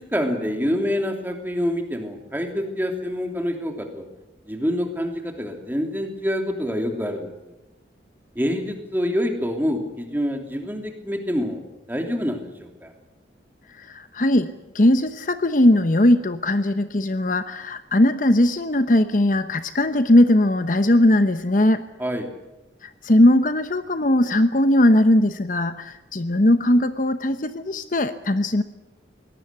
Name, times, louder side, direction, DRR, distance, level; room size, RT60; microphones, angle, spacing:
voice 1, 0.0-4.0 4.5-7.3 8.3-11.6 11.9-12.9 22.0-22.3, equal, 10° right, 4 dB, 3.0 m, -26 dB
voice 2, 13.8-21.9 22.8-28.6, left 1 dB, 45° left, 10 dB, 0.9 m, -19 dB
23.0 x 18.5 x 8.3 m, 0.98 s
head